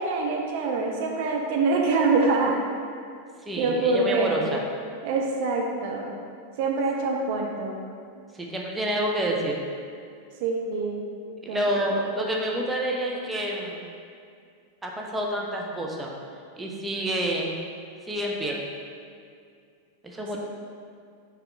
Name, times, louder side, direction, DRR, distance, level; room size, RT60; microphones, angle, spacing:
voice 1, 0.0-2.6 3.6-4.6 5.0-6.1 6.6-7.8 10.4-11.1 11.5-12.0, right 3 dB, 50° right, 0 dB, 0.6 m, -25 dB
voice 2, 3.5-4.6 8.3-9.6 11.4-13.8 14.8-16.1 16.6-17.5 18.1-18.6 20.0-20.4, right 1 dB, 10° right, -1 dB, 0.8 m, -28 dB
5.8 x 5.1 x 3.3 m, 2.3 s
figure-of-eight pair, 90°, 0 cm